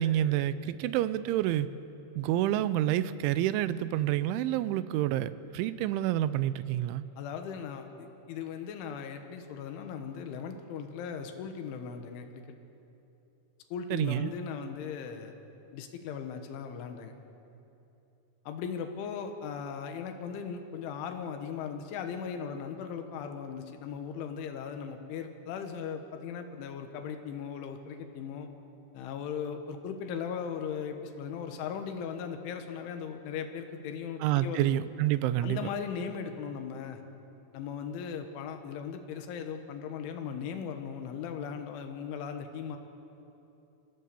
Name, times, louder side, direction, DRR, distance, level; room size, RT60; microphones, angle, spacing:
voice 1, 0.0-1.7 2.2-7.0 13.9-14.3 34.2-35.7, right 12 dB, 85° right, 15 dB, 3.0 m, -28 dB
voice 2, 7.2-12.4 13.7-15.3 15.7-17.1 18.5-28.5 28.9-34.7 35.4-37.0 37.5-42.8, left 7 dB, 85° left, 6 dB, 3.8 m, -38 dB
30.0 x 15.5 x 6.9 m, 2.9 s
omnidirectional pair, 5.4 m